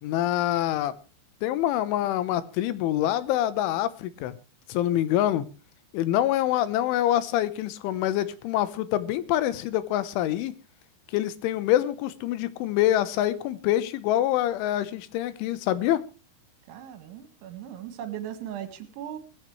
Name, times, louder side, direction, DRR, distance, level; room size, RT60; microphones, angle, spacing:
voice 1, 0.0-0.9 1.4-4.4 4.7-5.5 5.9-10.5 11.1-16.1, left 13 dB, 90° left, 14 dB, 3.6 m, -25 dB
voice 2, 16.7-19.2, right 10 dB, 80° right, 9 dB, 4.2 m, -38 dB
20.0 x 15.0 x 3.2 m, 0.32 s
omnidirectional pair, 5.3 m